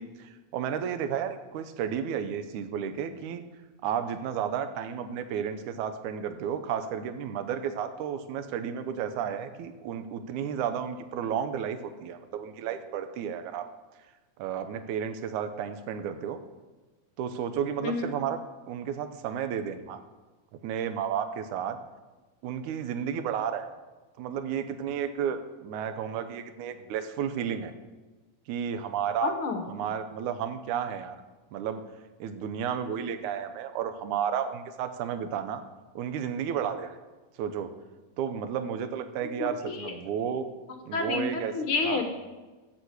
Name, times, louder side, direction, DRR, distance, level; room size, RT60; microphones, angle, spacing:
voice 1, 0.0-3.4 3.8-13.7 14.4-16.4 17.2-18.4 18.7-20.0 20.5-21.8 22.4-23.7 24.2-27.7 28.5-29.3 29.7-31.2 31.5-31.8 32.2-35.6 36.0-37.0 37.4-37.7 38.2-40.5 40.9-41.5 41.8-42.0, right 8 dB, 75° right, 9 dB, 2.2 m, -32 dB
voice 2, 29.2-29.6 39.4-39.9 40.9-42.0, left 4 dB, 65° left, 4 dB, 1.3 m, -29 dB
13.0 x 7.4 x 8.1 m, 1.2 s
omnidirectional pair, 3.8 m